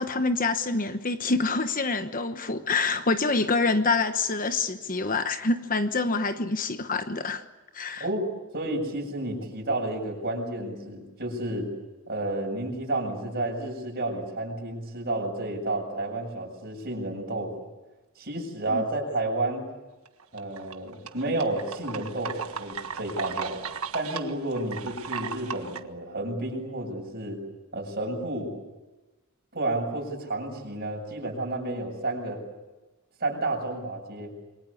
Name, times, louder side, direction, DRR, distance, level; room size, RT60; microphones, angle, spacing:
voice 1, 0.0-7.4 7.7-8.0 18.7-18.8, left 3 dB, 40° left, 1.1 m, -26 dB
voice 2, 8.5-11.7 12.1-17.5 18.2-19.7 20.3-23.6 23.9-27.4 27.7-28.5 29.5-32.4 33.2-34.3, right 2 dB, 45° right, 7.5 m, -31 dB
sound 1, 20.1-25.8, right 5 dB, 80° right, 1.5 m, -36 dB
27.5 x 24.0 x 8.5 m
head